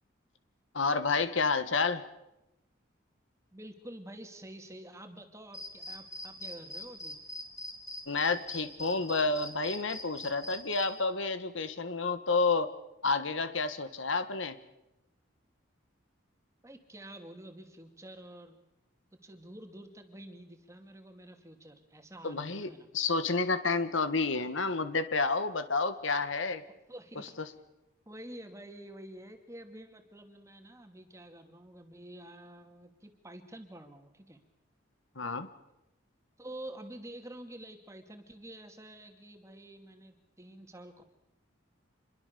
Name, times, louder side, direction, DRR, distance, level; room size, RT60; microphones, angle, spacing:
voice 1, 0.7-2.0 8.1-12.7 13.0-14.6 22.2-26.6 27.4-27.5 35.1-35.5, left 4 dB, 70° left, 11 dB, 1.6 m, -30 dB
voice 2, 3.5-7.2 16.6-18.6 19.1-22.9 26.9-27.4 28.1-34.4 36.4-41.0, right 1 dB, 15° right, 5 dB, 2.6 m, -48 dB
sound 1, 5.5-10.9, left 1 dB, 15° left, 3.8 m, -41 dB
27.0 x 22.5 x 6.9 m, 0.90 s
head